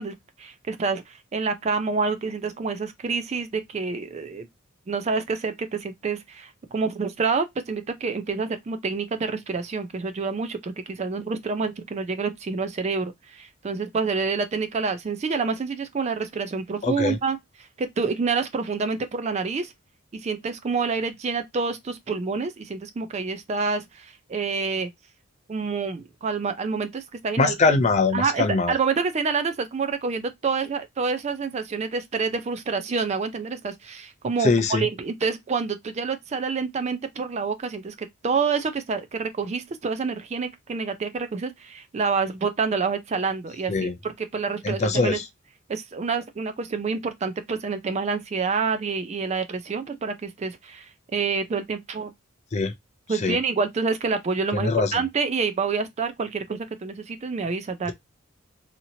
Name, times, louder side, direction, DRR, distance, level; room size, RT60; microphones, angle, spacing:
voice 1, 0.0-4.5 4.9-19.7 20.1-24.9 25.5-27.8 28.1-45.2 45.7-52.1 53.1-57.9, right 4 dB, 30° right, 0.3 m, -28 dB
voice 2, 16.8-17.2 27.4-28.7 34.4-34.9 43.7-43.9 44.6-45.2 52.5-52.7 53.2-53.4 54.5-54.9, left 3 dB, 35° left, 0.4 m, -22 dB
2.8 x 2.7 x 2.6 m
head